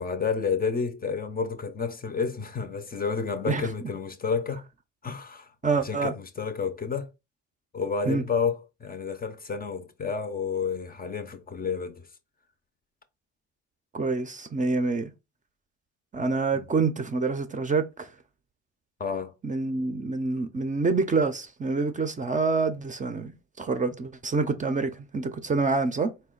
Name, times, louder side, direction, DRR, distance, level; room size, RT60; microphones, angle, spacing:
voice 1, 0.0-4.6 5.0-5.5 5.8-7.1 7.7-12.1 16.5-16.6 19.0-19.3, left 5 dB, 30° left, 0.5 m, -30 dB
voice 2, 5.6-6.1 8.1-8.2 13.9-15.1 16.1-18.1 19.4-26.1, right 4 dB, 25° right, 0.5 m, -27 dB
4.1 x 2.2 x 3.7 m
cardioid pair, 90°, 30 cm